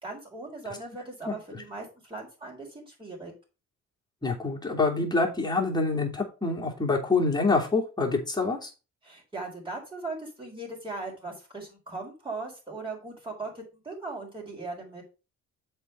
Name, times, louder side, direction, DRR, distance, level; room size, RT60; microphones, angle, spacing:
voice 1, 0.0-3.3 9.0-15.0, right 3 dB, 15° right, -2 dB, 4.4 m, -39 dB
voice 2, 1.3-1.6 4.2-8.7, left 3 dB, 15° left, -1 dB, 2.9 m, -26 dB
7.4 x 4.6 x 5.5 m, 0.32 s
cardioid pair, 90°, 30 cm